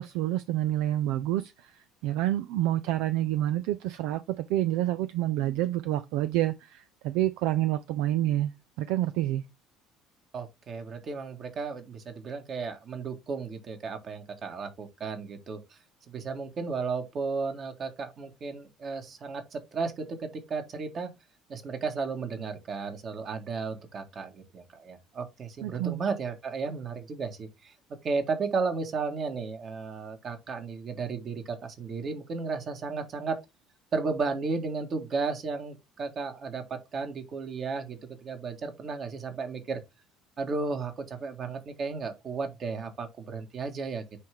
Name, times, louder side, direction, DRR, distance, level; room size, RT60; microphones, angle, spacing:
voice 1, 0.0-8.5 8.8-9.4 25.6-26.0, right 14 dB, 70° right, 0.4 m, -28 dB
voice 2, 10.3-15.8 16.1-21.1 21.5-27.7 28.0-33.4 33.9-39.8 40.4-44.0, right 4 dB, 45° right, 1.7 m, -34 dB
9.4 x 3.3 x 3.5 m
hypercardioid pair, 65°, 0 cm